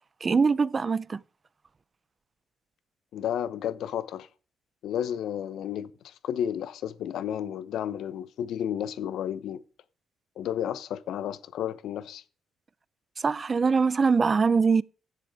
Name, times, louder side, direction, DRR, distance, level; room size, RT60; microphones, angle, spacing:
voice 1, 0.2-1.2 13.2-14.8, right 5 dB, 35° right, 0.5 m, -23 dB
voice 2, 3.1-4.3 4.8-9.6 10.4-12.2, left 10 dB, 75° left, 1.0 m, -32 dB
11.0 x 7.8 x 4.8 m
cardioid pair, 90°, 0 cm